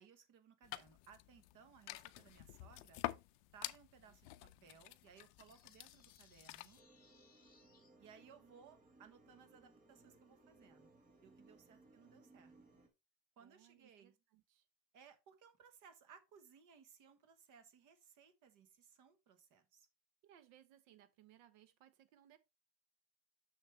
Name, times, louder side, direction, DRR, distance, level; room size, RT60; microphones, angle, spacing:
voice 1, 0.0-3.0 3.5-4.3 4.6-6.8 8.0-12.5 13.4-14.1 14.9-19.9, right 7 dB, 40° right, 1.3 m, -63 dB
sound 1, 0.6-6.8, left 19 dB, 50° left, 0.5 m, -49 dB
sound 2, 5.5-7.9, left 6 dB, 20° left, 1.7 m, -70 dB
sound 3, 6.8-12.9, right 2 dB, 15° right, 1.1 m, -65 dB
voice 2, 7.6-8.0 11.7-12.4 13.4-14.7 20.2-22.4, right 11 dB, 65° right, 1.2 m, -67 dB
6.7 x 6.5 x 3.2 m
cardioid pair, 170°, 49 cm